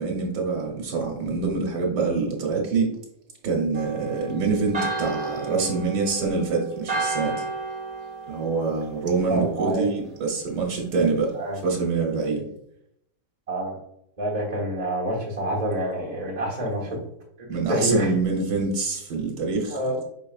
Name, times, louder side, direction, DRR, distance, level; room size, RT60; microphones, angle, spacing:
voice 1, 0.0-2.9 3.4-7.3 8.3-11.3 11.6-12.5 16.9-17.0 17.5-19.8, right 4 dB, 90° right, -1 dB, 1.6 m, -25 dB
Church bell, 3.7-9.5, right 3 dB, 45° right, 0.7 m, -33 dB
voice 2, 9.3-9.9 11.3-11.6 13.5-13.8 14.2-17.0 17.7-18.1 19.7-20.0, right 1 dB, 25° right, -5 dB, 1.2 m, -27 dB
5.3 x 4.3 x 2.3 m, 0.73 s
omnidirectional pair, 1.8 m